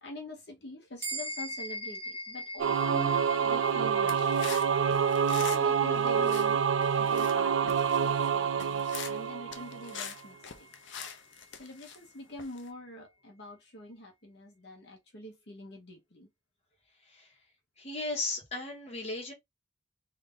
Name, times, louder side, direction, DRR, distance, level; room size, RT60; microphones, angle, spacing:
voice 1, 0.0-4.3 5.3-6.6 6.9-10.7 11.5-16.3, equal, 60° left, 1.1 m, -45 dB
sound 1, 1.0-10.7, equal, 15° right, 0.8 m, -43 dB
Singing / Musical instrument, 2.6-10.1, right 7 dB, 75° right, 0.3 m, -27 dB
sound 2, 4.1-5.7 5.9-6.5 6.8-7.4 7.7-8.3 8.6-9.2 9.5-12.0 12.4-12.7, left 7 dB, 75° left, 0.7 m, -44 dB
voice 2, 17.8-19.3, left 2 dB, 35° left, 1.3 m, -36 dB
3.3 x 2.6 x 3.8 m
head